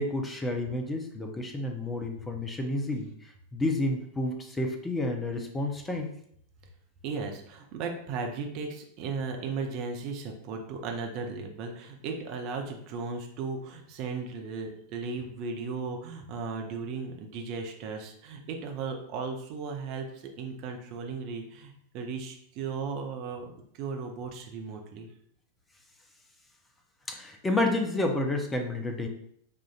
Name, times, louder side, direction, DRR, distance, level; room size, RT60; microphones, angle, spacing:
voice 1, 0.0-6.1 27.1-29.1, left 1 dB, 10° left, 4 dB, 0.6 m, -30 dB
voice 2, 7.0-25.1, right 4 dB, 40° right, 3 dB, 0.6 m, -36 dB
5.6 x 2.5 x 2.4 m, 0.67 s
figure-of-eight pair, 90°, 0 cm